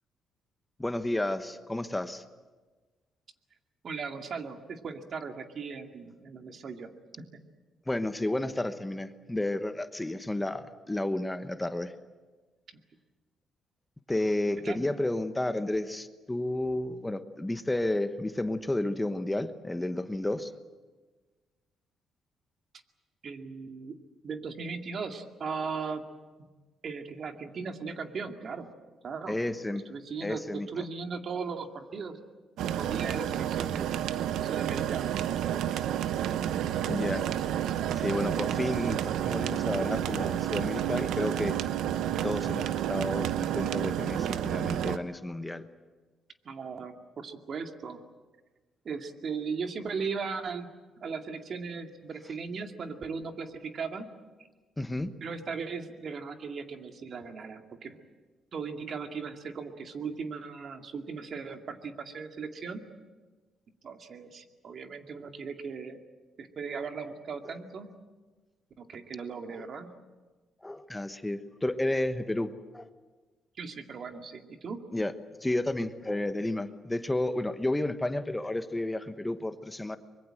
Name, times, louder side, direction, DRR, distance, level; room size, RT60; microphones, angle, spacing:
voice 1, 0.8-2.2 7.9-11.9 14.1-20.5 29.3-29.8 30.2-30.8 36.9-37.3 37.9-41.6 42.2-45.7 54.8-55.1 69.5-69.6 70.6-72.9 74.9-75.1 75.4-80.0, left 1 dB, 10° left, 10 dB, 1.2 m, -31 dB
voice 2, 3.8-6.9 14.6-14.8 23.2-24.0 24.2-26.0 26.4-26.5 26.8-28.7 29.0-29.4 29.9-32.2 32.8-33.9 34.4-35.2 46.4-48.0 48.8-50.7 51.0-54.1 55.2-58.0 58.5-62.8 63.8-66.0 66.4-67.9 68.8-69.9 73.6-74.8, right 5 dB, 55° right, 5 dB, 2.3 m, -37 dB
sound 1, 32.6-45.0, right 10 dB, 85° right, 0.9 m, -30 dB
24.5 x 22.5 x 7.8 m, 1.3 s
cardioid pair, 90°, 0 cm